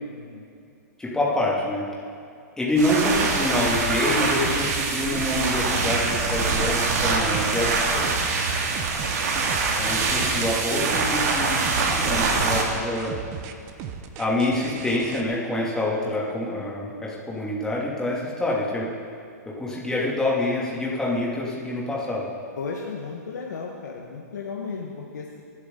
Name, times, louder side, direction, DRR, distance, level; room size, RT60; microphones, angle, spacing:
voice 1, 0.1-0.5 9.0-9.4 22.5-25.4, left 5 dB, 80° left, -1 dB, 1.6 m, -35 dB
voice 2, 1.0-1.8 2.6-8.1 9.8-13.1 14.2-18.9 19.6-22.3, left 1 dB, 5° left, -6 dB, 2.8 m, -26 dB
sound 1, 2.7-12.6, right 4 dB, 60° right, 2.4 m, -24 dB
sound 2, 3.7-15.2, right 8 dB, 35° right, 1.0 m, -37 dB
24.0 x 8.5 x 4.0 m, 2.5 s
hypercardioid pair, 135°, 9 cm